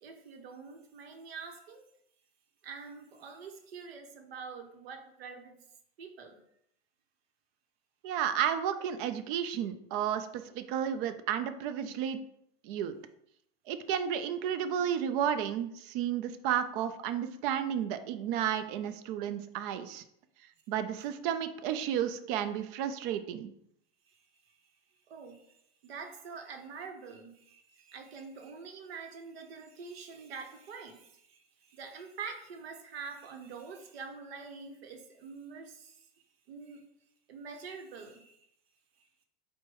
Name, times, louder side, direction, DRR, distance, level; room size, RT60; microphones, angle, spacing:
voice 1, 0.0-1.8 2.6-5.6 6.0-6.4 24.1-24.6 25.1-36.1 36.5-36.8 37.3-38.4 39.0-39.1, right 5 dB, 80° right, 5 dB, 0.9 m, -46 dB
voice 2, 8.0-12.2 12.6-13.0 13.7-20.0 20.7-23.5, right 9 dB, 60° right, 10 dB, 0.5 m, -32 dB
4.4 x 2.2 x 4.5 m, 0.73 s
hypercardioid pair, 110°, 30 cm